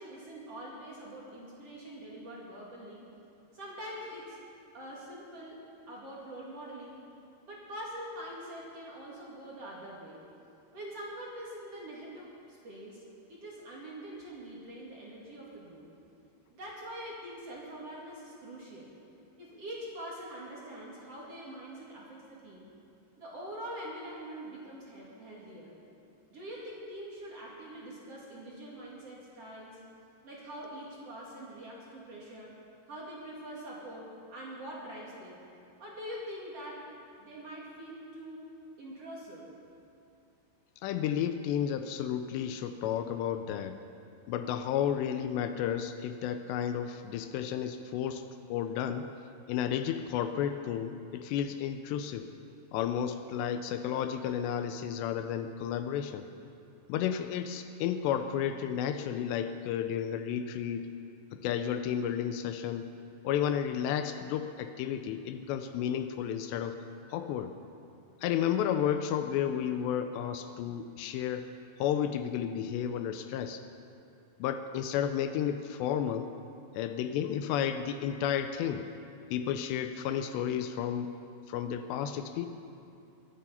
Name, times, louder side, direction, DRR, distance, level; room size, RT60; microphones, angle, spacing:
voice 1, 0.0-3.0 3.5-4.4 4.7-5.6 5.9-7.0 7.4-10.2 10.7-13.0 13.3-15.8 16.5-18.9 19.4-22.6 23.2-25.8 26.3-29.8 30.2-32.5 32.9-35.4 35.8-36.9 37.2-38.4 38.8-39.5, right 1 dB, 45° right, -5 dB, 2.4 m, -44 dB
voice 2, 40.8-43.8 44.3-49.1 49.5-52.3 52.7-56.3 56.9-60.9 61.3-62.9 63.2-66.8 67.1-67.5 68.2-71.5 71.8-73.6 74.4-76.3 76.7-78.9 79.3-81.1 81.5-82.5, left 9 dB, 85° left, 9 dB, 2.7 m, -32 dB
23.0 x 9.6 x 5.6 m, 2.6 s
omnidirectional pair, 5.1 m